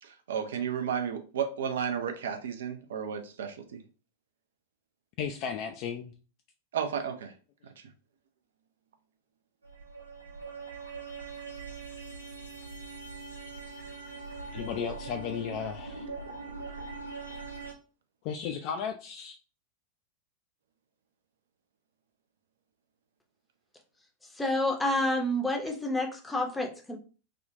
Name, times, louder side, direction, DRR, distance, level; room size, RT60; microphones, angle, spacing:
voice 1, 0.0-3.8 6.7-7.3 7.8-7.9, right 7 dB, 60° right, 0.5 m, -33 dB
voice 2, 5.2-6.1 14.5-16.1 18.2-19.3, left 7 dB, 45° left, 0.3 m, -34 dB
sound 1, 9.6-17.7, right 4 dB, 85° right, 0.8 m, -42 dB
voice 3, 24.4-27.0, left 1 dB, 10° left, 0.7 m, -29 dB
3.6 x 2.3 x 2.6 m
figure-of-eight pair, 90°, 0 cm